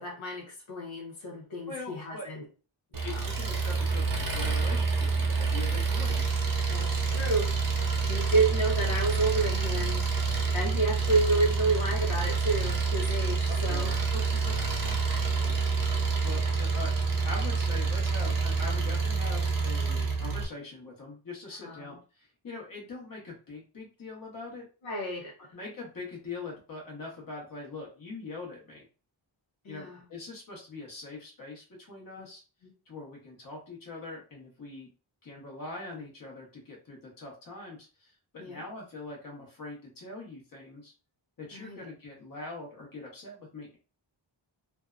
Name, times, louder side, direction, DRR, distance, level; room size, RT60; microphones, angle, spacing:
voice 1, 0.0-2.4 2.9-3.2 5.5-5.6 6.7-7.5 8.0-10.1 10.5-14.6 15.0-15.2 16.4-16.6 21.6-22.0 24.8-25.3 29.6-30.0 32.6-32.7 38.4-38.6 41.5-41.9, right 3 dB, 80° left, -2 dB, 0.9 m, -30 dB
voice 2, 1.7-2.2 3.0-6.2 13.5-14.0 15.3-16.9 17.2-24.6 25.5-28.9 29.7-32.4 32.9-34.9 35.2-40.9 41.4-43.8, left 3 dB, 45° left, -2 dB, 1.1 m, -42 dB
Engine, 2.9-20.5, right 4 dB, 45° right, 0.7 m, -28 dB
2.6 x 2.2 x 2.4 m, 0.35 s
wide cardioid pair, 115°, 46 cm